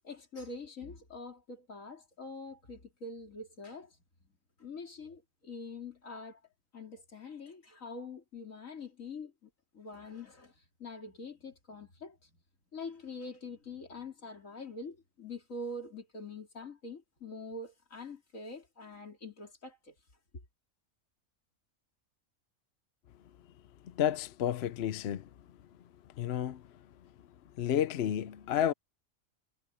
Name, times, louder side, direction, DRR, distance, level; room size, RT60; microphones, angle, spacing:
voice 1, 0.0-4.0 4.6-6.4 6.7-12.4 12.7-19.9, left 3 dB, 80° left, 3.6 m, -45 dB
voice 2, 23.9-25.3 26.2-26.6 27.6-28.7, left 10 dB, 60° left, 0.8 m, -31 dB
omnidirectional pair, 1.4 m